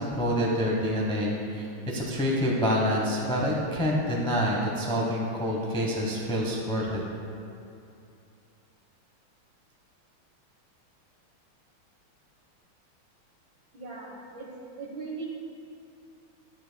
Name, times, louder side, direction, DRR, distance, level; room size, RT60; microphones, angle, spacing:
voice 1, 0.0-7.0, equal, 10° left, -3 dB, 0.3 m, -27 dB
voice 2, 13.7-14.5 14.8-15.3, right 4 dB, 60° right, -2 dB, 1.9 m, -39 dB
11.0 x 9.7 x 2.3 m, 2.6 s
omnidirectional pair, 2.3 m